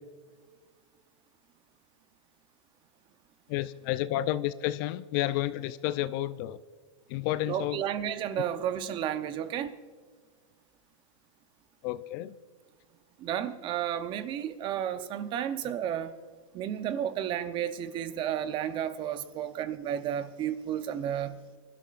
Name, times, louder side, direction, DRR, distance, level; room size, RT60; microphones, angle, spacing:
voice 1, 3.5-6.6 7.1-7.8 11.8-12.4, left 14 dB, 40° left, 14 dB, 0.5 m, -31 dB
voice 2, 7.5-9.7 13.2-16.2 16.5-21.3, right 10 dB, 30° right, 11 dB, 0.8 m, -32 dB
25.5 x 12.5 x 2.5 m, 1.5 s
hypercardioid pair, 135°, 17 cm